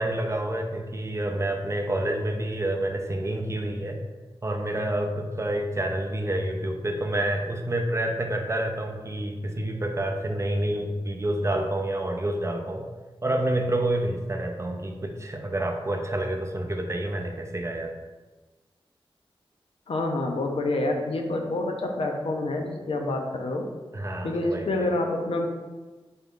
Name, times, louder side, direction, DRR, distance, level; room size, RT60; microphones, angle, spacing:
voice 1, 0.0-4.0 4.4-12.9 13.2-17.9 23.9-24.9, right 1 dB, 30° right, 4 dB, 0.4 m, -28 dB
voice 2, 19.9-23.7 24.2-25.5, left 2 dB, 70° left, 2 dB, 0.5 m, -27 dB
3.9 x 2.3 x 3.6 m, 1.3 s
cardioid pair, 60°, 10 cm